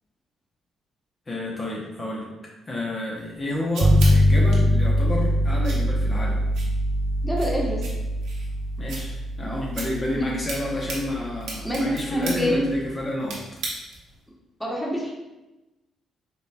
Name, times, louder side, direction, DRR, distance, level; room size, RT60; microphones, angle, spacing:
voice 1, 1.3-6.4 8.8-13.4, left 1 dB, 35° left, -3 dB, 0.8 m, -30 dB
sound 1, 3.2-14.2, right 3 dB, 90° right, 1.0 m, -39 dB
sound 2, 3.8-12.8, equal, 35° right, 0.4 m, -23 dB
voice 2, 7.2-7.8 10.2-10.3 11.6-12.6 14.6-15.1, equal, ahead, -4 dB, 1.0 m, -26 dB
5.0 x 3.3 x 2.2 m, 1.0 s
cardioid pair, 90°, 0 cm